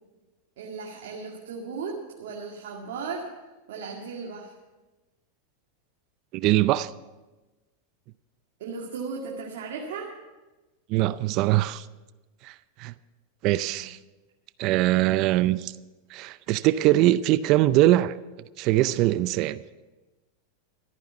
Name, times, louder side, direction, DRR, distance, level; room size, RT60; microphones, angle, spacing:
voice 1, 0.6-3.3 3.7-4.5 8.6-10.1 13.6-13.8, right 5 dB, 75° right, -1 dB, 2.1 m, -36 dB
voice 2, 6.3-6.9 10.9-11.9 12.4-12.9 13.4-14.0 14.6-15.7 16.1-18.1 18.6-19.6, right 15 dB, 50° right, 16 dB, 0.5 m, -22 dB
14.0 x 9.3 x 7.1 m, 1.1 s
hypercardioid pair, 115°, 0 cm